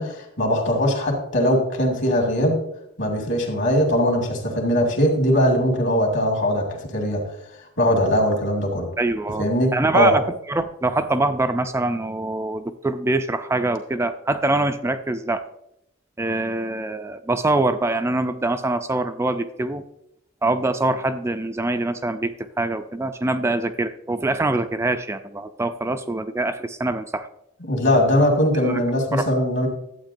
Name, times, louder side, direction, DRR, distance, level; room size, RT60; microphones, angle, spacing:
voice 1, 0.0-2.6 3.0-7.2 7.8-8.9 9.4-10.1 27.6-29.7, equal, 60° left, 1 dB, 2.2 m, -20 dB
voice 2, 9.0-10.2 10.5-15.4 16.2-19.8 20.4-27.3 28.6-28.8 29.1-29.3, right 2 dB, 15° right, 9 dB, 0.3 m, -24 dB
11.5 x 8.2 x 2.6 m, 0.79 s
head